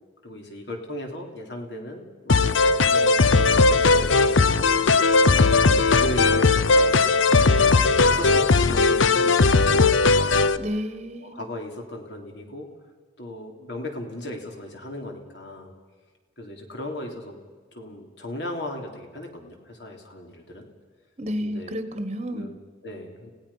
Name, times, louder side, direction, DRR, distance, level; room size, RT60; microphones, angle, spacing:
voice 1, 0.2-5.3 5.7-7.2 7.6-10.6 11.2-12.7 13.2-15.7 16.4-17.4 17.7-20.7 21.4-21.8 22.3-23.3, left 1 dB, 60° left, 2 dB, 3.4 m, -37 dB
sound 1, 2.3-10.6, left 3 dB, 80° left, 0.7 m, -18 dB
voice 2, 10.6-11.4 21.2-22.5, equal, 35° right, 9 dB, 1.4 m, -31 dB
29.5 x 17.0 x 5.7 m, 1.4 s
head